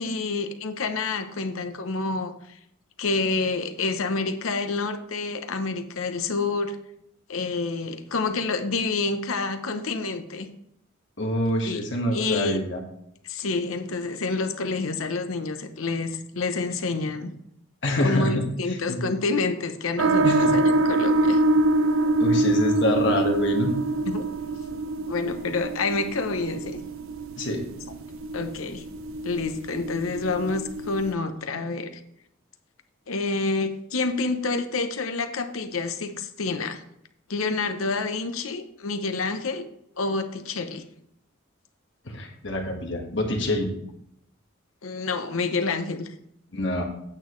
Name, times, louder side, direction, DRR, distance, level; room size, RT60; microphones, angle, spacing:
voice 1, 0.0-2.3 3.0-6.8 7.3-10.5 11.6-11.8 12.1-12.6 13.2-17.3 18.0-21.4 24.0-24.2 25.1-26.8 28.3-28.8 29.2-31.9 33.1-36.8 37.3-39.6 40.0-40.8 44.8-46.1, left 3 dB, 90° left, 8 dB, 0.8 m, -28 dB
voice 2, 11.2-12.8 17.8-19.0 20.2-20.5 22.2-23.7 27.4-27.6 42.1-43.7 46.5-46.8, left 1 dB, 60° left, 1 dB, 1.5 m, -26 dB
sound 1, 20.0-31.1, right 2 dB, 90° right, 0.6 m, -25 dB
8.8 x 8.2 x 3.2 m, 0.75 s
head